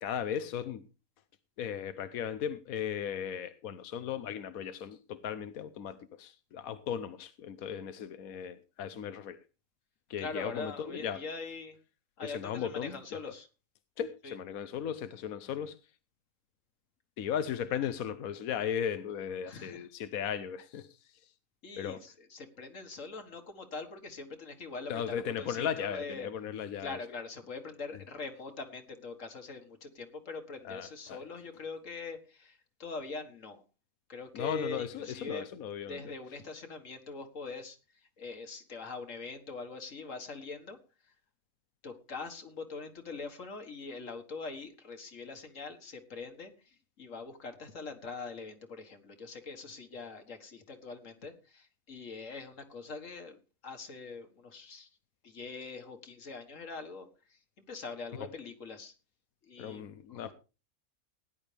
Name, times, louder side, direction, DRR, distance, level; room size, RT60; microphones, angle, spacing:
voice 1, 0.0-0.8 1.6-9.4 10.1-11.2 12.2-13.2 14.0-15.8 17.2-21.3 21.8-22.0 24.9-27.0 30.6-31.2 34.3-36.0 58.2-58.3 59.6-60.3, left 8 dB, 80° left, 1.3 m, -36 dB
voice 2, 10.2-11.8 12.2-13.5 14.2-14.4 19.4-19.9 21.6-26.3 26.8-33.6 34.1-35.5 35.9-40.8 41.0-41.1 41.8-54.9 55.2-57.4 57.7-58.9 59.4-59.8 60.1-60.3, left 4 dB, 65° left, 2.1 m, -43 dB
18.0 x 10.5 x 3.4 m
omnidirectional pair, 1.5 m